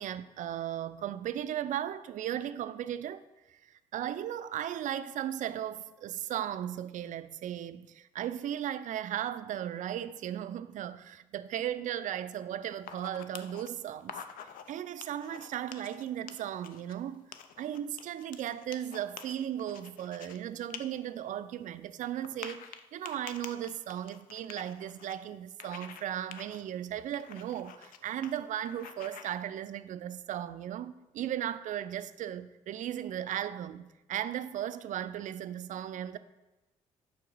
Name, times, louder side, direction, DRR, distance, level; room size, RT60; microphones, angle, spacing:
voice 1, 0.0-3.2 3.5-3.6 3.9-14.2 14.7-17.3 17.6-36.2, right 11 dB, 55° right, 0.4 m, -36 dB
sound 1, 12.8-13.7 14.0-14.7 15.0-16.9 17.3-20.4 20.7-20.8 21.2-21.3 22.2-25.1 25.6-26.0 26.3-26.6 27.1-28.0 28.2-28.4 28.6-29.4, left 8 dB, 60° left, 0.5 m, -47 dB
6.1 x 4.5 x 3.9 m
hypercardioid pair, 55°, 16 cm